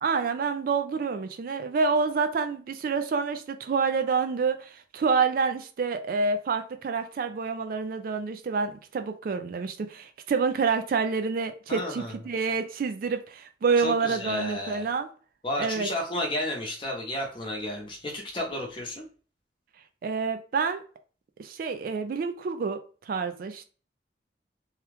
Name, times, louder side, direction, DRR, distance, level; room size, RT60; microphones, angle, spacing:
voice 1, 0.0-15.1 15.6-15.9 20.0-20.8 21.4-22.8 23.1-23.7, right 5 dB, 55° right, 0.3 m, -28 dB
voice 2, 11.7-12.2 13.7-14.9 15.4-19.0, left 1 dB, 30° left, 0.9 m, -32 dB
2.9 x 2.3 x 3.4 m
head